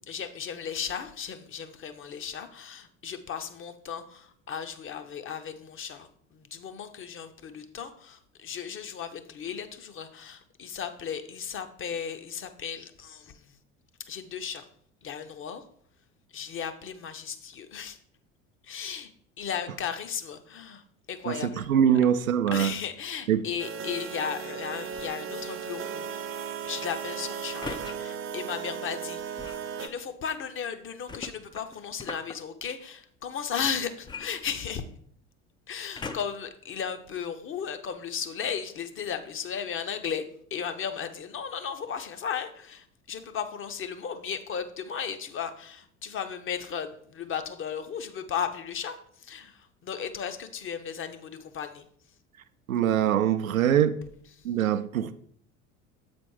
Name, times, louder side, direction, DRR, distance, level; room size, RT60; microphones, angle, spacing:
voice 1, 0.1-13.6 14.0-14.7 15.0-15.6 16.3-18.0 18.6-19.1 19.4-21.7 22.5-26.1 26.6-29.5 29.8-34.8 35.7-51.9 54.3-54.5, left 7 dB, 30° left, 0.8 m, -35 dB
voice 2, 21.7-22.7 23.3-23.4 52.7-54.0 54.4-55.1, right 9 dB, 90° right, 0.5 m, -23 dB
sound 1, 23.6-29.9, right 7 dB, 30° right, 0.7 m, -36 dB
sound 2, 24.9-25.3 27.6-28.0 29.4-29.7 31.1-32.4 34.0-35.0 35.9-36.5 37.2-37.3, left 4 dB, 10° left, 0.4 m, -40 dB
7.5 x 4.3 x 4.7 m
hypercardioid pair, 70°, 40 cm